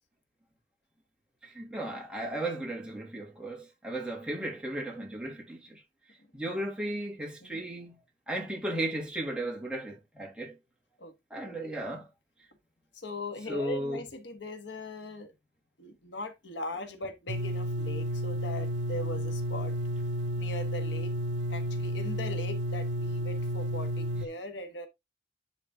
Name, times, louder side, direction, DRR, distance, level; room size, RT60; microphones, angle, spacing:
voice 1, 1.4-5.8 6.3-8.0 8.3-10.5 11.3-12.1 13.5-14.0, right 1 dB, 5° right, 2.4 m, -35 dB
voice 2, 12.9-15.3 15.8-20.0 20.4-21.1 21.5-24.9, left 1 dB, 85° left, 1.5 m, -40 dB
sound 1, 17.3-24.3, equal, 90° right, 0.7 m, -32 dB
10.0 x 4.2 x 3.6 m
head